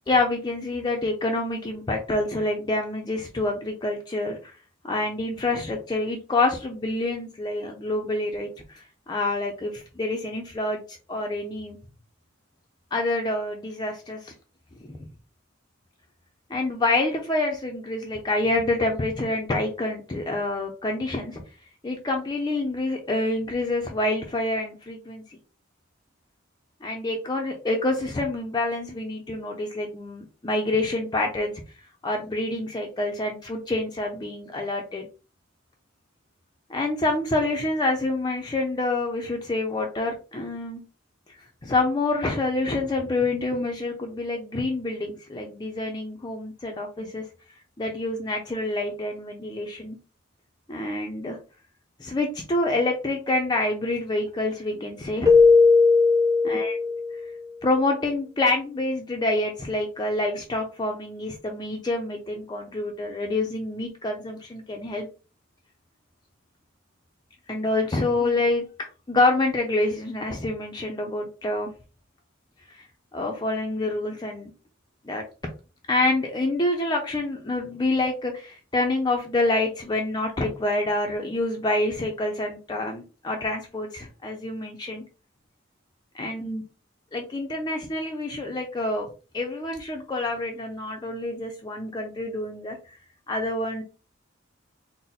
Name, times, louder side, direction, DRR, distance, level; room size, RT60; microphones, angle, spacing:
voice 1, 0.1-4.6 4.8-11.8 12.9-14.3 14.8-15.0 16.5-21.4 21.8-25.2 26.8-31.5 32.0-35.1 36.7-40.8 41.3-47.2 47.8-50.0 50.7-51.4 52.0-55.3 56.4-56.8 57.6-65.1 67.5-71.7 72.7-72.8 73.1-74.5 75.0-75.2 75.9-85.0 86.1-86.6 87.1-89.1 89.3-92.8 93.3-93.8, left 2 dB, 20° left, 1 dB, 0.5 m, -27 dB
Keyboard (musical), 55.3-57.3, left 4 dB, 15° right, 0.7 m, -17 dB
4.0 x 2.1 x 4.0 m, 0.34 s
head